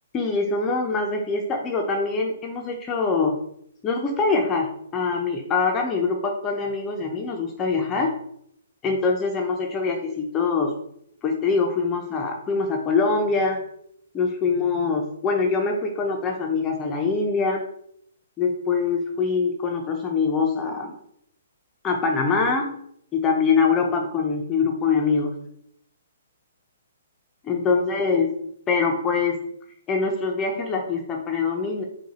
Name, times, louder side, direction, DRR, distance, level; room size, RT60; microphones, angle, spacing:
voice 1, 0.1-3.4 3.8-8.1 8.8-10.7 11.2-13.6 14.1-17.6 18.4-20.9 21.8-22.7 23.1-25.3 27.4-28.3 28.7-29.4 29.9-31.8, left 4 dB, 20° left, 1 dB, 0.6 m, -24 dB
4.6 x 2.3 x 4.1 m, 0.71 s
hypercardioid pair, 130°, 0 cm